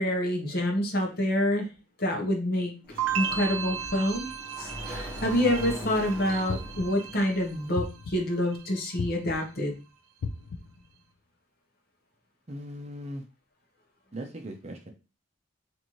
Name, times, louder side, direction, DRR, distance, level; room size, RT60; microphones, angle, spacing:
voice 1, 0.0-1.7 2.0-2.7 3.1-4.3 4.6-9.8, left 1 dB, 45° left, 1 dB, 0.9 m, -27 dB
Sliding door, 2.8-7.8, equal, 5° left, 1.2 m, -41 dB
sound 1, 3.0-8.0 8.3-8.9, right 8 dB, 85° right, 0.5 m, -36 dB
sound 2, 6.5-7.1 7.8-8.4 9.0-9.6 10.2-10.9, left 4 dB, 85° left, 0.4 m, -36 dB
voice 2, 12.5-13.2 14.1-14.9, equal, 30° right, 3 dB, 0.6 m, -39 dB
4.0 x 2.6 x 3.0 m, 0.31 s
head